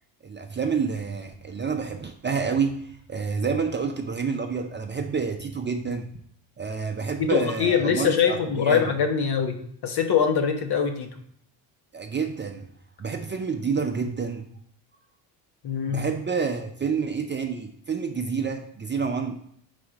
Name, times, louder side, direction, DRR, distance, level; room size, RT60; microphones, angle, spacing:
voice 1, 0.2-6.2 6.6-8.9 11.9-12.7 13.0-14.5 15.9-19.3, right 5 dB, 25° right, 4 dB, 0.5 m, -28 dB
voice 2, 7.2-9.6 9.8-11.1 15.6-16.1, left 7 dB, 50° left, 5 dB, 1.1 m, -23 dB
4.9 x 4.1 x 4.8 m, 0.68 s
supercardioid pair, 80°, 49 cm